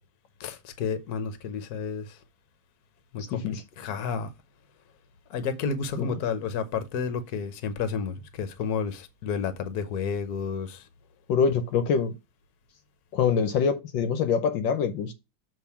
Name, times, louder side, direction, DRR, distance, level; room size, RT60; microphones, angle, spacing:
voice 1, 0.4-2.2 3.1-4.3 5.3-10.9, left 6 dB, 55° left, 1.3 m, -31 dB
voice 2, 3.3-3.6 6.0-6.1 11.3-12.1 13.1-15.1, left 6 dB, 75° left, 1.4 m, -25 dB
6.9 x 3.7 x 5.8 m
omnidirectional pair, 2.2 m